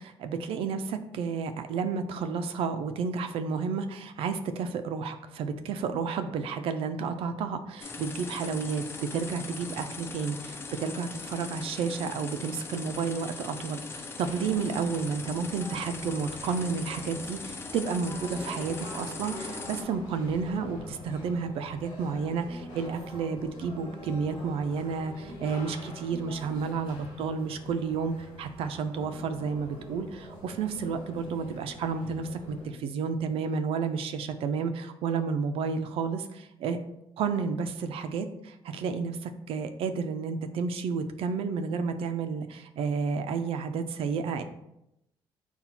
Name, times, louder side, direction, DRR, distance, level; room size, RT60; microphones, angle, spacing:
voice 1, 0.0-8.8 9.1-36.8 37.2-44.4, right 5 dB, 80° right, 8 dB, 0.4 m, -31 dB
sound 1, 7.8-19.8, left 4 dB, 25° left, 0.3 m, -40 dB
sound 2, 14.2-32.7, left 1 dB, 65° left, 1.4 m, -45 dB
4.1 x 2.3 x 4.1 m, 0.83 s
cardioid pair, 165°, 10 cm